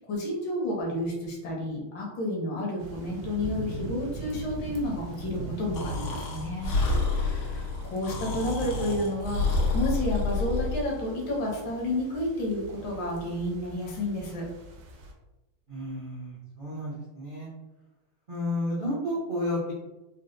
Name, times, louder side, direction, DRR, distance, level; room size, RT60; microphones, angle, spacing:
voice 1, 0.0-6.8 7.1-14.5, left 1 dB, 65° left, -2 dB, 1.4 m, -31 dB
sound 1, 2.8-15.1, right 2 dB, 75° right, 1.1 m, -42 dB
Breathing, 5.7-10.8, left 3 dB, 85° left, 1.5 m, -28 dB
voice 2, 15.7-17.5 18.3-19.7, left 1 dB, 55° right, -9 dB, 0.5 m, -31 dB
4.2 x 2.1 x 2.5 m, 1.0 s
omnidirectional pair, 2.3 m